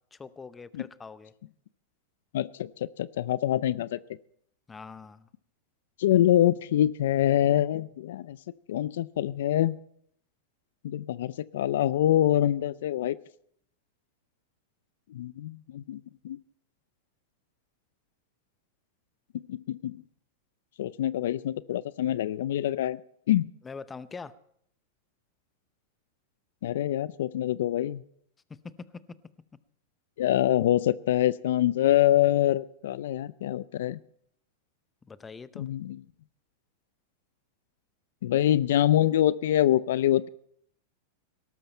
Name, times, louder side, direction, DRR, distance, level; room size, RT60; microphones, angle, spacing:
voice 1, 0.1-1.3 4.7-5.3 23.6-24.3 28.5-29.0 35.1-35.7, left 5 dB, 15° left, 15 dB, 0.7 m, -43 dB
voice 2, 2.3-2.7 3.0-4.0 6.0-8.4 8.7-9.8 10.8-13.2 15.1-16.0 16.2-16.4 19.5-20.0 20.8-23.0 23.3-23.5 26.6-28.0 30.2-34.0 35.6-36.0 38.2-40.3, left 12 dB, 75° left, 18 dB, 0.5 m, -25 dB
17.5 x 13.0 x 4.4 m, 0.68 s
supercardioid pair, 135°, 0 cm